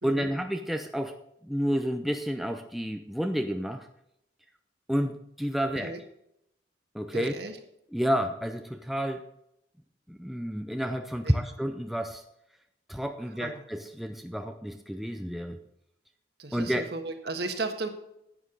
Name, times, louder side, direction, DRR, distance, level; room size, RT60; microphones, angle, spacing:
voice 1, 0.0-3.9 4.9-6.0 6.9-7.3 7.9-9.3 10.1-12.2 12.9-15.6 16.5-16.9, equal, ahead, 5 dB, 0.5 m, -30 dB
voice 2, 7.1-7.6 11.2-11.3 13.4-13.5 16.4-17.9, right 3 dB, 60° right, 5 dB, 1.6 m, -34 dB
11.0 x 9.4 x 4.0 m, 0.79 s
head